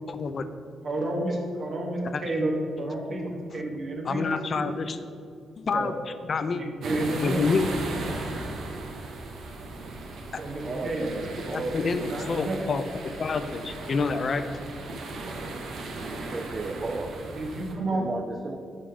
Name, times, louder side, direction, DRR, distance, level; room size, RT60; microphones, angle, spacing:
voice 1, 0.1-0.4 2.1-2.2 2.8-2.9 4.1-5.0 5.6-6.0 6.2-6.6 7.2-8.2 11.5-14.6, left 4 dB, 50° left, 10 dB, 0.4 m, -28 dB
voice 2, 0.8-2.5 2.8-4.2 4.5-4.7 5.7-5.9 6.5-7.4 10.4-11.1 11.9-12.6 17.4-18.1, right 2 dB, 55° right, 0 dB, 1.3 m, -30 dB
sound 1, 6.8-17.7, right 2 dB, 75° right, 0.9 m, -37 dB
voice 3, 10.5-12.0 16.2-17.2 17.9-18.6, right 3 dB, 40° right, 5 dB, 0.4 m, -34 dB
5.5 x 5.3 x 5.0 m, 2.4 s
supercardioid pair, 65°, 0 cm